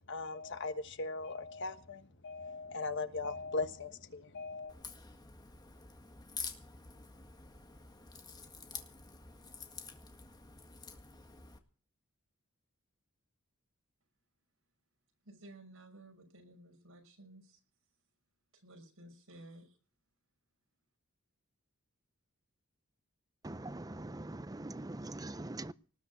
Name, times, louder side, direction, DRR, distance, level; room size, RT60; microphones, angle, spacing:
voice 1, 0.0-4.7, left 3 dB, 55° left, 1.4 m, -39 dB
Crack, 4.7-11.6, left 4 dB, 20° left, 1.8 m, -48 dB
voice 2, 15.2-17.6 18.5-19.8, right 1 dB, 70° right, 6.0 m, -55 dB
voice 3, 23.4-25.7, right 2 dB, 15° right, 0.6 m, -43 dB
19.0 x 6.8 x 8.3 m
head